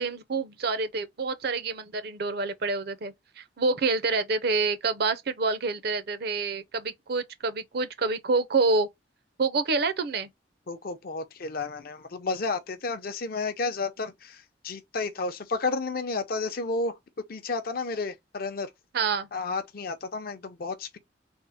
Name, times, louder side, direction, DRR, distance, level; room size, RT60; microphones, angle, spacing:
voice 1, 0.0-8.9 9.4-10.3 18.9-19.3, right 3 dB, 60° right, 0.6 m, -27 dB
voice 2, 10.7-17.0 17.3-18.7 19.3-21.0, left 3 dB, 55° left, 0.6 m, -32 dB
3.6 x 2.1 x 4.1 m
head